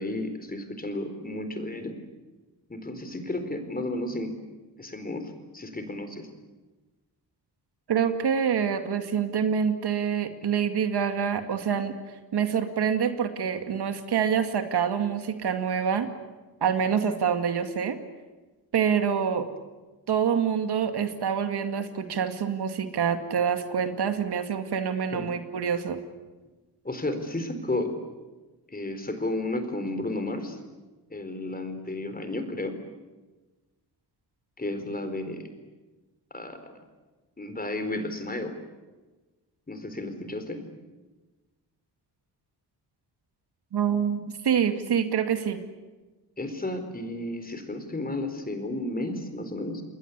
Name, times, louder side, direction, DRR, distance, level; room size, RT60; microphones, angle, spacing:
voice 1, 0.0-2.0 2.7-4.3 4.8-6.3 25.1-25.3 26.8-27.9 28.7-30.6 31.1-32.8 34.6-35.5 36.3-36.7 37.4-38.5 39.7-40.6 46.4-49.8, left 2 dB, 20° left, 8 dB, 4.3 m, -32 dB
voice 2, 7.9-11.9 12.3-16.1 16.6-18.0 18.7-19.5 20.1-26.0 43.7-45.6, right 7 dB, 75° right, 7 dB, 2.3 m, -26 dB
29.0 x 21.0 x 8.3 m, 1.2 s
cardioid pair, 90°, 40 cm